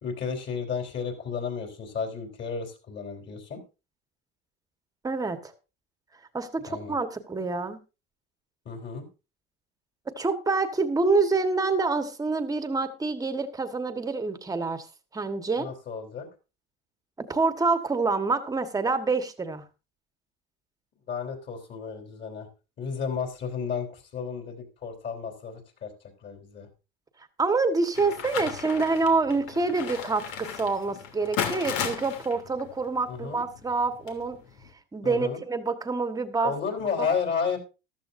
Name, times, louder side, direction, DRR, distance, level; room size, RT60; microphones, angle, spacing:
voice 1, 0.0-3.6 6.7-6.9 8.7-9.0 15.6-16.3 21.1-22.5 22.8-25.9 26.2-26.7 33.1-33.4 35.0-35.4 36.4-37.6, left 6 dB, 40° left, 3 dB, 3.9 m, -32 dB
voice 2, 5.0-5.5 6.3-7.8 10.2-14.9 15.1-15.7 17.2-19.6 27.4-34.4 34.9-36.5 37.0-37.1, right 3 dB, 10° right, 9 dB, 1.4 m, -27 dB
sound 1, 27.9-34.7, left 8 dB, 75° left, 3.1 m, -36 dB
14.5 x 13.0 x 2.6 m, 0.29 s
cardioid pair, 145°, 29 cm